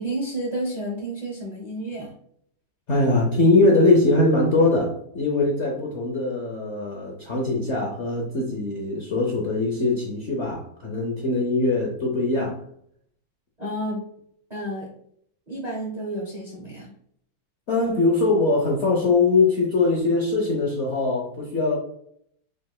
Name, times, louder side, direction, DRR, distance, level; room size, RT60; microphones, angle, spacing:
voice 1, 0.0-2.1 13.6-14.1 14.5-14.9 15.5-16.9, right 1 dB, 35° right, -3 dB, 0.7 m, -31 dB
voice 2, 2.9-12.6 17.7-21.8, left 2 dB, 60° left, -2 dB, 0.7 m, -21 dB
5.0 x 3.8 x 2.3 m, 0.67 s
omnidirectional pair, 2.1 m